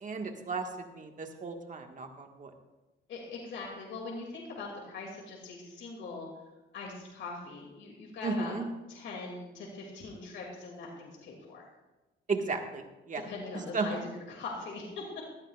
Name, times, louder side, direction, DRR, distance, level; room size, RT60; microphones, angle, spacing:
voice 1, 0.0-2.5 8.2-8.6 12.3-13.2 13.7-13.9, right 4 dB, 40° right, 4 dB, 1.7 m, -34 dB
voice 2, 3.1-6.3 6.7-8.5 8.9-11.7 13.1-15.0, left 3 dB, 70° left, -1 dB, 2.6 m, -41 dB
17.5 x 13.0 x 2.4 m, 1.1 s
cardioid pair, 90°, 20 cm